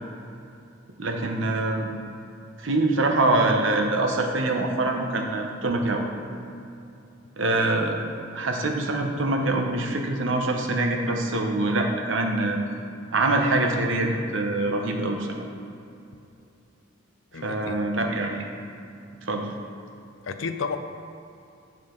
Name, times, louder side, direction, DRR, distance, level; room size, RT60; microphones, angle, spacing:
voice 1, 1.0-1.9 2.6-6.1 7.4-8.0 8.3-12.6 13.1-15.4 17.4-18.4 19.2-19.5, right 2 dB, 80° right, 3 dB, 1.0 m, -24 dB
voice 2, 17.3-17.8 20.2-20.8, left 5 dB, 90° left, 8 dB, 0.5 m, -31 dB
8.0 x 7.3 x 3.9 m, 2.7 s
head